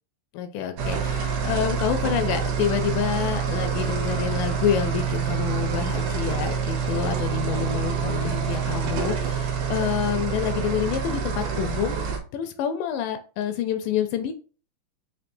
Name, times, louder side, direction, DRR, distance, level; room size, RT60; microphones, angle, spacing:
voice 1, 0.3-12.0 12.3-14.3, left 9 dB, 80° left, 7 dB, 2.0 m, -28 dB
sound 1, 0.8-12.2, right 6 dB, 85° right, 2.5 m, -27 dB
5.9 x 2.8 x 2.6 m, 0.37 s
omnidirectional pair, 3.8 m